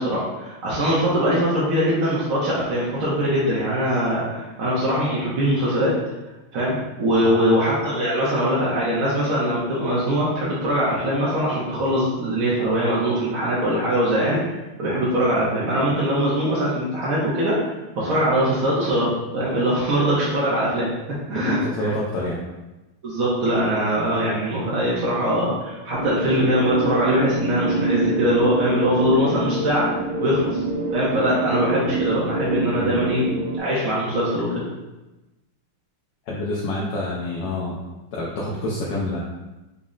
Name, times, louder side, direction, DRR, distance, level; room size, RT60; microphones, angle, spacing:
voice 1, 0.0-6.0 6.5-14.4 14.8-20.9 21.3-21.9 23.0-30.6 30.9-33.2 33.6-34.6, equal, 65° right, -7 dB, 0.9 m, -22 dB
voice 2, 21.3-22.4 32.8-33.0 36.3-37.8 38.1-39.2, left 1 dB, 75° left, -4 dB, 0.9 m, -27 dB
sound 1, 25.9-33.6, right 2 dB, 80° right, 1.3 m, -26 dB
4.1 x 2.0 x 3.6 m, 1.1 s
omnidirectional pair, 2.2 m